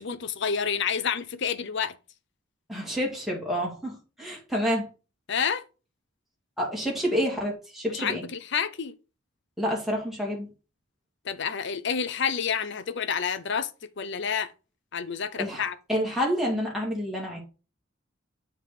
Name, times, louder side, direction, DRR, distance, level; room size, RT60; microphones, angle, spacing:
voice 1, 0.0-1.9 5.3-5.6 7.9-8.9 11.2-14.5 14.9-15.8, left 6 dB, 60° left, 0.7 m, -29 dB
voice 2, 2.7-4.9 6.6-8.2 9.6-10.5 15.4-17.4, equal, ahead, 2.1 m, -28 dB
7.5 x 3.7 x 4.8 m
head